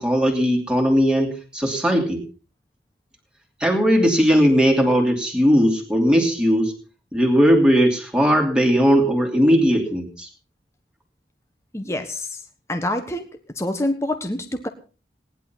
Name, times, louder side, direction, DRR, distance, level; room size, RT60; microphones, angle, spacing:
voice 1, 0.0-2.2 3.6-6.7 7.1-10.3, equal, 5° right, 0 dB, 2.7 m, -18 dB
voice 2, 11.7-12.4 12.7-13.3 13.5-14.7, left 1 dB, 15° left, 6 dB, 1.3 m, -26 dB
18.5 x 11.0 x 5.8 m, 0.37 s
head